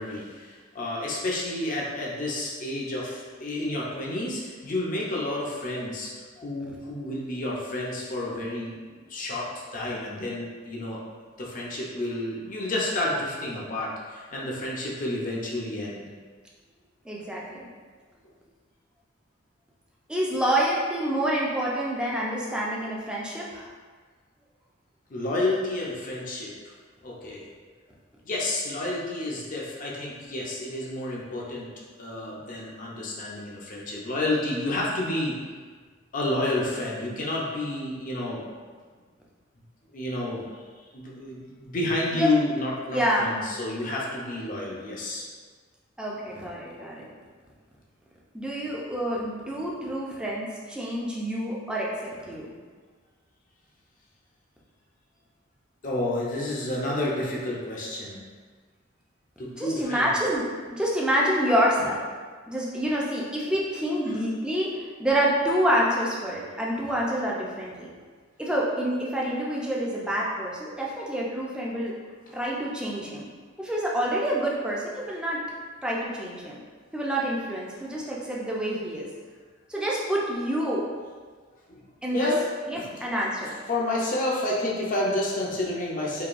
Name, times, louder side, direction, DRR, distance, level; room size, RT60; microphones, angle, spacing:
voice 1, 0.0-6.1 6.4-8.7 9.1-11.0 11.4-16.0 25.1-26.7 27.0-27.5 28.2-31.7 32.0-35.4 36.1-38.4 39.9-40.4 40.9-45.3 55.8-58.2 59.4-60.1 81.7-81.8 82.1-82.4 82.7-82.9 83.7-86.2, left 1 dB, 45° left, -4 dB, 0.6 m, -30 dB
voice 2, 17.0-17.7 20.1-23.7 42.1-42.3 42.9-43.3 46.0-47.1 48.3-52.5 59.6-62.0 62.5-67.9 68.4-71.9 72.3-73.3 73.6-75.4 75.8-76.6 76.9-79.1 79.7-80.9 82.0-82.3 82.7-83.5, equal, 5° right, -5 dB, 0.5 m, -27 dB
4.7 x 2.8 x 2.5 m, 1.5 s
head